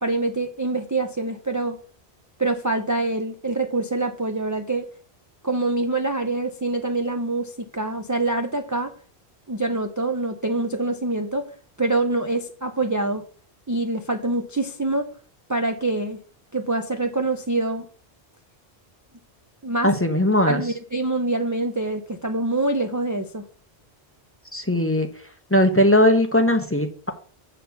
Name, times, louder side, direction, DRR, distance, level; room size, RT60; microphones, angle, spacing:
voice 1, 0.0-1.8 2.4-4.9 5.4-8.9 9.5-11.5 11.8-13.2 13.7-15.1 15.5-16.2 16.5-17.9 19.6-19.9 20.5-23.4, right 2 dB, 20° right, 0.6 m, -25 dB
voice 2, 19.8-20.6 24.5-25.1 25.5-27.1, left 1 dB, 15° left, 1.0 m, -19 dB
8.1 x 4.4 x 7.0 m
omnidirectional pair, 1.1 m